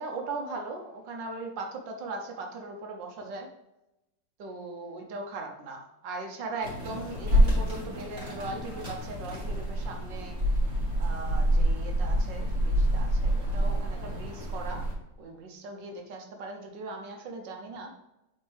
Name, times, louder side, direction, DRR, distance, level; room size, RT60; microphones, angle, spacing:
voice 1, 0.0-3.5 4.4-10.4 11.0-14.8 15.2-17.9, right 3 dB, 75° right, 3 dB, 1.6 m, -39 dB
sound 1, 6.6-14.9, equal, 40° right, 2.8 m, -27 dB
8.4 x 4.5 x 3.4 m, 0.92 s
omnidirectional pair, 2.0 m